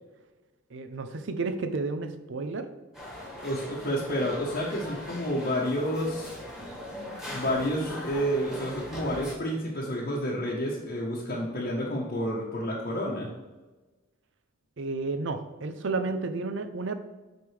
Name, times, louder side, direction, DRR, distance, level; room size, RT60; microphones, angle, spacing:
voice 1, 0.7-2.7 14.8-16.9, right 3 dB, 65° right, 9 dB, 0.6 m, -31 dB
sound 1, 2.9-9.3, left 1 dB, ahead, 1.7 m, -40 dB
voice 2, 3.4-6.4 7.3-13.3, equal, 50° left, -6 dB, 1.1 m, -30 dB
7.8 x 5.3 x 3.3 m, 1.2 s
head